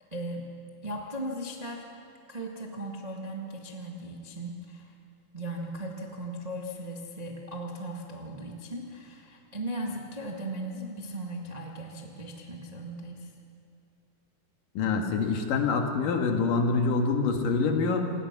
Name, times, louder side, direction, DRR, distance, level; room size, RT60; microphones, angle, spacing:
voice 1, 0.1-0.5 0.8-1.9 2.3-4.9 5.3-13.3, right 1 dB, 45° right, 0 dB, 0.5 m, -37 dB
voice 2, 14.7-18.1, left 4 dB, 65° left, 3 dB, 3.2 m, -26 dB
27.0 x 19.5 x 6.1 m, 2.7 s
omnidirectional pair, 4.3 m